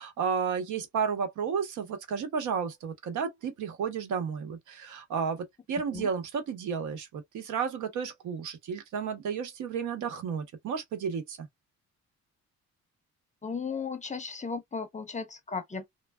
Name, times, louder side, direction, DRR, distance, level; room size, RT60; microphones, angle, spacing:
voice 1, 0.0-11.5, right 6 dB, 75° right, 1.0 m, -32 dB
voice 2, 13.4-15.9, left 5 dB, 25° left, 0.7 m, -35 dB
3.2 x 2.1 x 2.2 m
cardioid pair, 90°, 30 cm